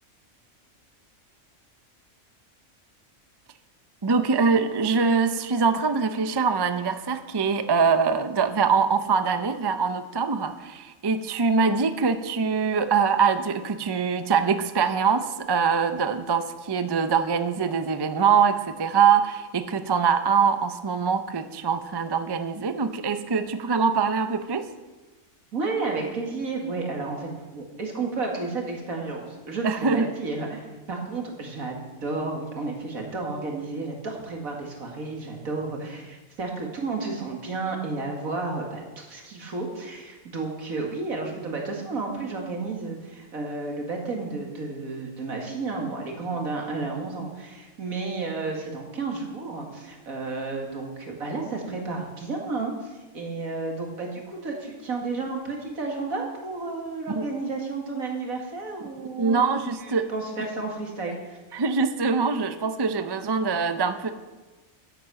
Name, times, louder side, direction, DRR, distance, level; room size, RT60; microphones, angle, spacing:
voice 1, 4.0-24.7 29.6-30.1 57.2-57.3 59.2-60.1 61.5-64.1, right 5 dB, 30° right, 10 dB, 0.5 m, -23 dB
voice 2, 25.5-31.8 32.0-61.4, right 3 dB, 80° right, 1 dB, 2.5 m, -32 dB
10.5 x 9.2 x 7.6 m, 1.2 s
omnidirectional pair, 1.4 m